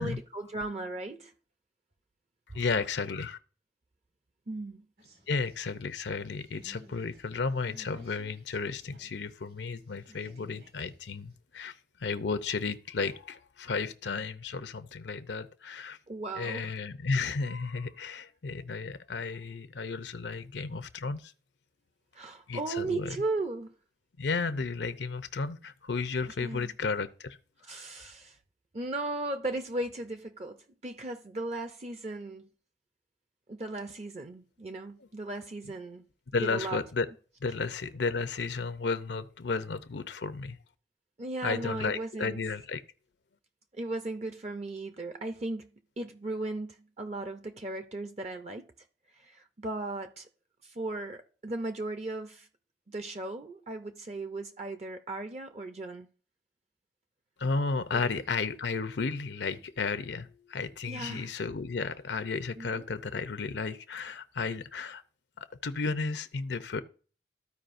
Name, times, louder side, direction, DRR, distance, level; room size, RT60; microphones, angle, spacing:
voice 1, 0.0-1.3 2.5-2.6 4.5-4.9 16.1-16.8 22.1-23.7 26.2-26.7 27.6-28.4 28.7-32.5 33.5-36.0 36.4-36.8 41.2-42.4 43.7-45.7 46.0-48.7 49.2-50.3 50.6-52.5 52.9-56.1 57.9-58.0 60.8-61.4 62.6-62.9, right 2 dB, 35° right, 0.6 m, -36 dB
voice 2, 2.5-3.4 5.3-11.7 12.0-16.0 16.4-21.3 22.5-23.2 24.2-27.4 27.7-27.9 36.3-37.1 37.4-40.6 41.4-42.8 57.4-65.0 65.4-66.8, left 4 dB, 85° left, 0.7 m, -33 dB
sound 1, 5.0-9.2 9.5-11.4, left 1 dB, 65° right, 2.3 m, -57 dB
14.0 x 4.8 x 2.6 m
head